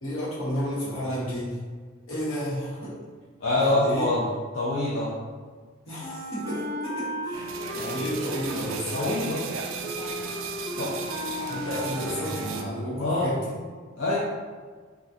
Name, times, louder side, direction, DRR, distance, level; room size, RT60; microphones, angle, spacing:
voice 1, 0.0-1.6 2.1-3.0 3.6-4.1 5.9-8.9 11.4-13.5, equal, 90° left, -8 dB, 1.2 m, -32 dB
voice 2, 3.4-4.2 4.5-5.1 8.9-9.4 10.8-11.1 13.0-13.3 14.0-14.2, left 2 dB, 65° left, -8 dB, 0.6 m, -25 dB
Wind instrument woodwind instrument, 6.0-13.0, left 1 dB, 15° left, 0.5 m, -36 dB
sound 1, 7.3-12.6, right 6 dB, 65° right, 0.3 m, -35 dB
3.8 x 2.3 x 2.6 m, 1.5 s
head